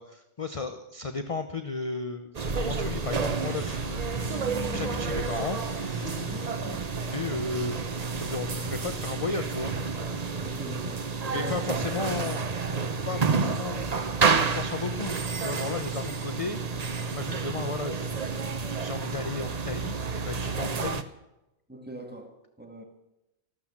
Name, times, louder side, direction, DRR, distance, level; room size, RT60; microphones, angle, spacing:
voice 1, 0.0-5.6 5.9-6.2 7.1-9.7 11.3-12.6 13.0-13.9 14.3-16.6 17.1-21.0, left 4 dB, 35° left, 9 dB, 0.8 m, -35 dB
sound 1, 2.3-21.0, right 5 dB, 40° right, 0.9 m, -30 dB
sound 2, 2.5-10.3, left 1 dB, 10° left, 1.9 m, -42 dB
voice 2, 6.0-6.4 10.4-11.0 11.3-11.5 11.9-12.0 21.7-22.8, equal, 10° right, 2 dB, 2.2 m, -41 dB
13.5 x 12.5 x 7.3 m, 0.92 s
omnidirectional pair, 1.2 m